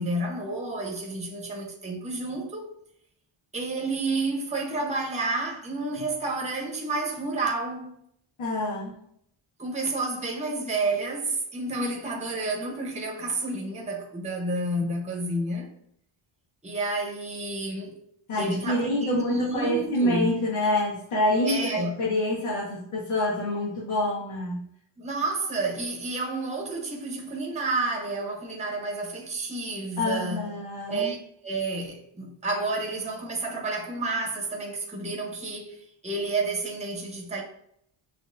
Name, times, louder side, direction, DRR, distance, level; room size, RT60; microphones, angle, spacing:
voice 1, 0.0-2.7 3.5-7.9 9.6-15.7 16.6-18.1 18.4-20.4 21.4-21.9 25.0-30.5 30.9-31.2 31.4-37.4, right 2 dB, 15° right, 0.9 m, -30 dB
voice 2, 8.4-9.0 18.3-24.6 30.0-31.1, left 1 dB, 85° left, 1.5 m, -27 dB
6.3 x 2.9 x 2.6 m
wide cardioid pair, 150°, 49 cm